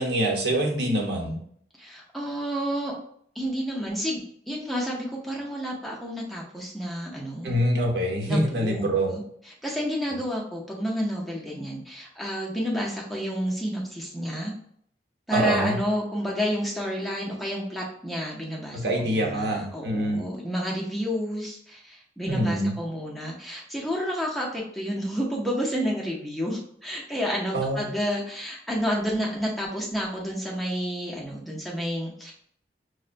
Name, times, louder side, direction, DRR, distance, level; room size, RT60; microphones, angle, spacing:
voice 1, 0.0-1.4 7.4-9.1 15.3-15.8 18.7-20.3 22.3-22.8 27.5-27.8, right 1 dB, 75° right, 0 dB, 0.9 m, -25 dB
voice 2, 1.8-2.9 3.3-7.6 8.3-9.2 9.6-14.5 15.3-32.3, equal, ahead, -3 dB, 0.6 m, -30 dB
6.2 x 2.1 x 2.5 m, 0.64 s
head